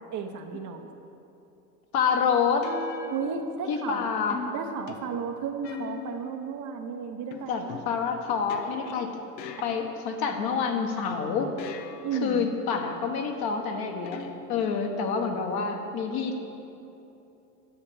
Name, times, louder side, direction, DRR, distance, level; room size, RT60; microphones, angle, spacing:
voice 1, 0.1-0.9 3.1-4.1 4.5-7.8 12.0-12.5, right 6 dB, 40° right, 4 dB, 0.8 m, -33 dB
sound 1, 0.5-0.9 2.6-3.9 4.3-6.5 7.3-10.3 11.1-12.3 14.0-14.9, left 7 dB, 85° left, 0.9 m, -42 dB
voice 2, 1.9-2.7 3.7-4.4 7.5-9.2 9.6-11.5 12.2-14.2 14.5-16.4, left 6 dB, 50° left, 4 dB, 1.5 m, -27 dB
10.0 x 7.4 x 6.3 m, 2.9 s
hypercardioid pair, 95°, 48 cm